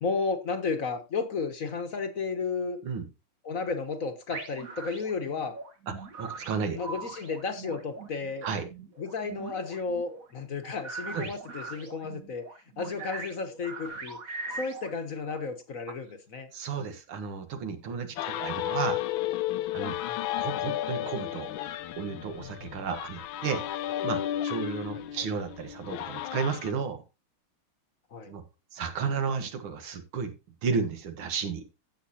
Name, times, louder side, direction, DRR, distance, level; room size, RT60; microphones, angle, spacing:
voice 1, 0.0-2.8 3.4-5.6 6.7-8.5 9.0-12.5 12.8-14.2 14.5-16.5 18.2-18.4 20.1-20.2 24.9-25.2 28.1-28.3, left 4 dB, 50° left, 1.2 m, -33 dB
sound 1, 4.3-15.4, right 4 dB, 45° right, 1.9 m, -41 dB
voice 2, 5.9-6.8 8.4-8.7 11.1-11.3 16.5-19.0 19.7-20.0 20.4-21.5 22.0-23.7 24.0-27.0 28.3-28.4 28.7-30.3 30.6-31.6, right 5 dB, 80° right, 2.2 m, -33 dB
sound 2, 18.2-26.7, left 13 dB, 75° left, 1.4 m, -33 dB
15.0 x 6.4 x 2.8 m
omnidirectional pair, 2.3 m